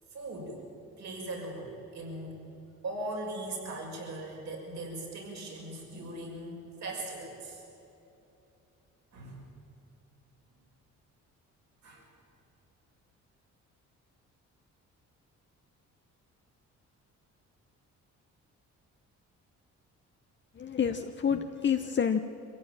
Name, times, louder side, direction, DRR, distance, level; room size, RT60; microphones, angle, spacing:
voice 1, 0.1-0.6 1.0-2.5 2.8-7.6 9.1-9.4 11.8-12.0, right 2 dB, 65° right, -1 dB, 6.2 m, -39 dB
voice 2, 20.6-22.2, left 7 dB, 40° left, 6 dB, 1.0 m, -28 dB
24.0 x 16.0 x 9.0 m, 2.9 s
cardioid pair, 90°, 30 cm